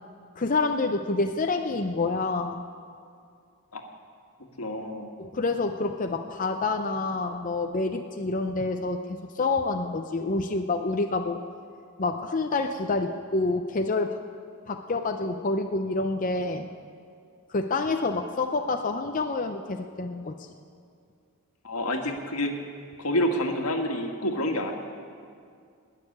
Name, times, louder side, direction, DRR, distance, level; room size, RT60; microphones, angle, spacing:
voice 1, 0.4-2.6 5.2-11.4 12.0-14.2 14.7-16.7 17.5-20.3, left 3 dB, 35° left, 5 dB, 0.6 m, -27 dB
voice 2, 4.6-5.1 21.6-22.5 23.0-24.7, left 1 dB, 90° left, 3 dB, 1.6 m, -28 dB
19.5 x 6.7 x 9.8 m, 2.3 s
head